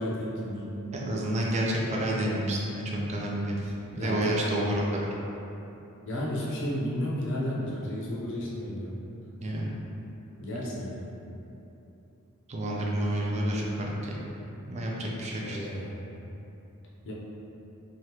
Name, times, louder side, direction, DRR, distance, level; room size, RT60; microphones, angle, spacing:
voice 1, 0.0-0.8 3.9-4.8 6.1-9.0 10.4-11.1 15.4-16.0 17.0-17.1, equal, 60° left, -5 dB, 0.6 m, -33 dB
voice 2, 0.9-5.1 9.4-9.7 12.5-14.2 14.7-15.6, right 1 dB, 30° right, -3 dB, 0.4 m, -29 dB
3.3 x 2.3 x 2.8 m, 2.9 s
head